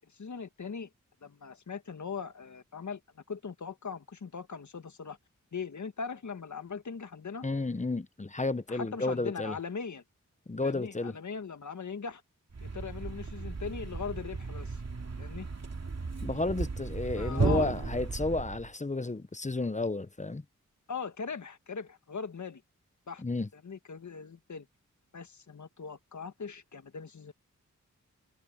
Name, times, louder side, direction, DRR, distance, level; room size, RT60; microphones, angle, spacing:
voice 1, 0.1-0.9 1.2-5.2 5.5-7.4 8.7-10.0 10.6-12.2 12.6-14.8 15.2-15.5 17.2-17.7 20.9-22.6 23.1-23.2 23.6-24.7 25.1-27.3, left 5 dB, 65° left, 1.8 m, -40 dB
voice 2, 7.4-9.6 10.5-11.2 16.2-20.4 23.2-23.5, left 2 dB, 20° left, 1.0 m, -32 dB
Thump thud, 12.5-18.7, right 4 dB, 55° right, 2.6 m, -35 dB
cardioid pair, 45°, 32 cm